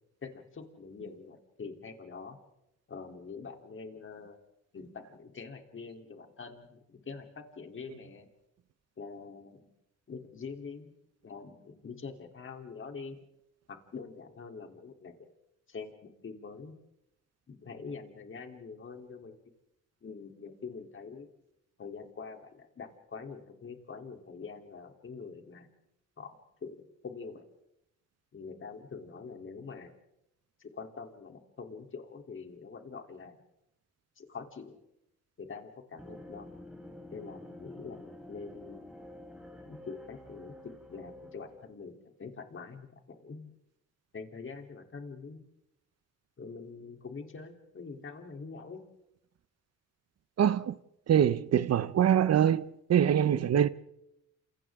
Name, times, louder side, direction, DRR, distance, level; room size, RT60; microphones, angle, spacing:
voice 1, 0.2-2.4 2.9-4.4 4.7-8.3 9.0-9.7 10.1-10.9 11.2-13.2 13.7-15.3 15.7-16.7 17.5-19.3 20.0-21.3 21.8-25.7 26.2-26.3 26.6-27.4 28.3-29.9 30.6-33.4 34.2-34.8 35.4-36.5 37.1-38.0 38.3-38.8 39.6-43.5 44.1-45.4 46.4-48.8, left 5 dB, 40° left, 3.6 m, -45 dB
sound 1, 36.0-41.7, left 1 dB, ahead, 4.9 m, -49 dB
voice 2, 50.4-50.8 51.1-53.7, right 9 dB, 55° right, 1.0 m, -24 dB
29.5 x 27.5 x 3.8 m
cardioid pair, 90°, 30 cm